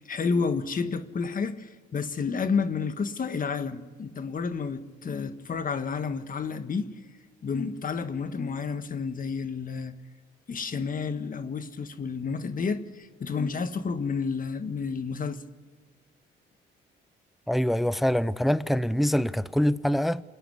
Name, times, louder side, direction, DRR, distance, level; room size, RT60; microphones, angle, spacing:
voice 1, 0.0-6.9 7.4-9.9 10.5-15.4, left 5 dB, 45° left, 1.6 m, -30 dB
voice 2, 17.5-20.2, equal, ahead, 0.5 m, -24 dB
27.5 x 10.0 x 9.7 m
cardioid pair, 90°, 20 cm